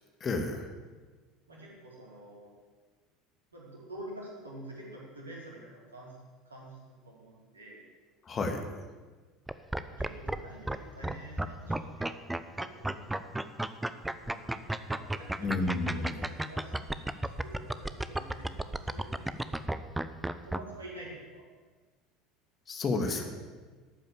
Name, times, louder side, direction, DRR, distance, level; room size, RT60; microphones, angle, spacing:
voice 1, 0.2-0.7 8.3-8.6 15.4-16.1 22.7-23.3, left 3 dB, 30° left, 5 dB, 1.9 m, -31 dB
voice 2, 1.5-2.5 3.5-6.2 6.5-7.8 9.9-12.2 12.6-13.1 14.2-16.7 17.1-19.8 20.4-21.4 23.0-23.3, right 1 dB, 80° right, -4 dB, 4.2 m, -47 dB
sound 1, 9.5-10.4 10.7-10.8 11.0-20.6, right 1 dB, 5° right, 0.7 m, -32 dB
12.5 x 9.0 x 8.6 m, 1.4 s
figure-of-eight pair, 70°, 0 cm